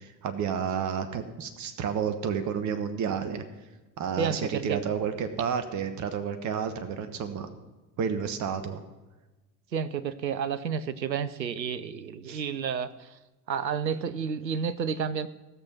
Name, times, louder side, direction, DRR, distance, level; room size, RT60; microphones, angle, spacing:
voice 1, 0.0-3.4 4.0-7.5 8.0-8.8 12.3-12.4, right 7 dB, 35° right, 9 dB, 1.2 m, -31 dB
voice 2, 4.2-4.8 9.7-13.2 13.5-15.3, right 7 dB, 85° right, 13 dB, 0.7 m, -30 dB
16.5 x 6.6 x 6.0 m, 1.1 s
figure-of-eight pair, 70°, 50 cm